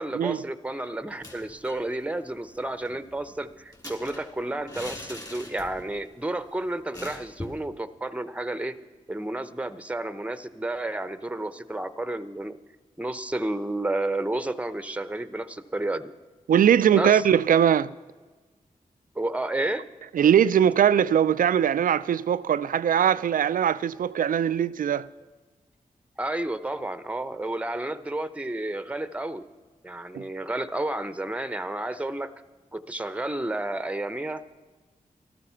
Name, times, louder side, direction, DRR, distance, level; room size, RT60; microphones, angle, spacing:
voice 1, 0.0-8.7 9.1-12.6 13.0-16.1 16.9-17.2 19.1-19.9 26.2-29.4 29.8-32.3 32.7-34.4, right 1 dB, 10° right, 0.9 m, -31 dB
sound 1, 1.1-1.9 2.2-2.3 2.6-6.0 6.3-6.4 6.9-7.7, left 1 dB, 25° left, 3.2 m, -42 dB
voice 2, 16.5-17.9 20.1-25.1 30.1-30.2, right 9 dB, 75° right, 0.4 m, -21 dB
13.5 x 13.0 x 5.7 m
cardioid pair, 45°, 14 cm